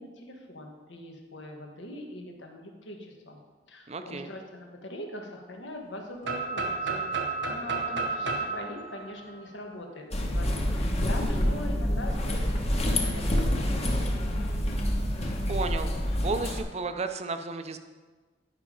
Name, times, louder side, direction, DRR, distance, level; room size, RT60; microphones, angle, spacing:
voice 1, 0.0-3.4 3.7-7.1 7.5-14.1, left 1 dB, 85° left, 2 dB, 1.3 m, -42 dB
voice 2, 3.9-4.3 15.5-15.9 16.2-17.8, right 3 dB, 35° right, 8 dB, 0.5 m, -32 dB
sound 1, 6.2-10.1, right 4 dB, 80° right, 1.0 m, -32 dB
sound 2, 10.1-16.6, equal, 35° left, 1.1 m, -27 dB
10.5 x 5.2 x 4.9 m, 1.4 s
head